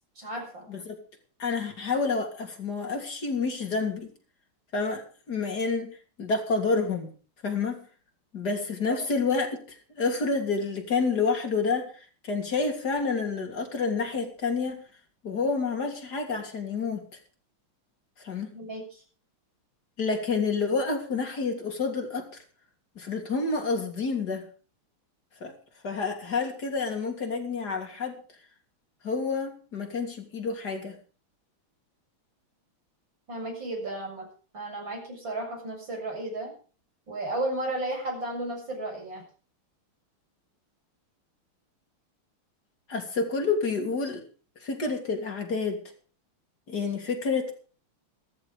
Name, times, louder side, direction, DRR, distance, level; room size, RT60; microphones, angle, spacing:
voice 1, 0.2-0.7 8.9-9.0 18.5-19.0 33.3-34.2 34.5-36.5 37.1-39.2, right 1 dB, 55° right, 0 dB, 7.9 m, -33 dB
voice 2, 0.7-1.0 1.4-4.1 4.7-7.1 7.4-7.8 8.3-14.9 15.2-17.2 18.2-18.6 20.0-22.3 23.0-24.5 25.4-25.5 25.8-28.2 29.0-31.0 42.9-44.2 44.6-45.8 46.7-47.5, left 4 dB, 45° left, 3 dB, 3.6 m, -29 dB
14.5 x 14.0 x 5.1 m, 0.39 s
omnidirectional pair, 2.4 m